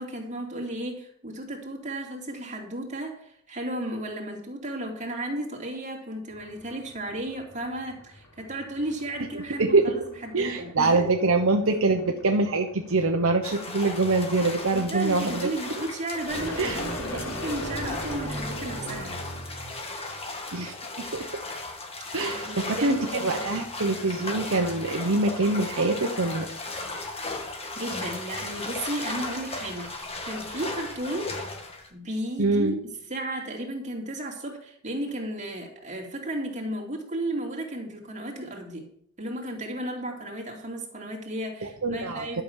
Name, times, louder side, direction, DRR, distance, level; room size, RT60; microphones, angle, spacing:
voice 1, 0.0-11.1 14.7-19.1 21.8-21.9 22.2-23.6 27.7-31.3 31.9-32.8 33.1-38.8 39.2-42.4, right 1 dB, 35° right, 1 dB, 2.6 m, -34 dB
sound 1, 6.3-19.8, equal, 70° left, 3.9 m, -39 dB
voice 2, 10.3-15.5 16.6-16.8 20.5-21.2 22.1-26.5 32.4-32.8 41.6-42.4, right 3 dB, 65° right, 3 dB, 1.0 m, -24 dB
sound 2, 13.4-31.9, left 2 dB, 25° left, 1.7 m, -36 dB
11.5 x 6.1 x 7.2 m, 0.69 s
head